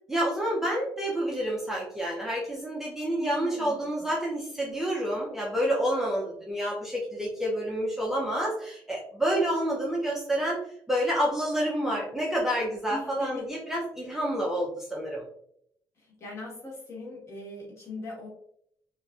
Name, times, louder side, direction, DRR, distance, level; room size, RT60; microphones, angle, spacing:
voice 1, 0.1-10.6 10.9-15.2, equal, 5° right, -4 dB, 0.4 m, -28 dB
voice 2, 3.2-3.8 12.9-13.6 16.0-18.3, left 1 dB, 35° left, -3 dB, 1.1 m, -40 dB
2.9 x 2.4 x 2.2 m, 0.70 s
cardioid pair, 160°, 8 cm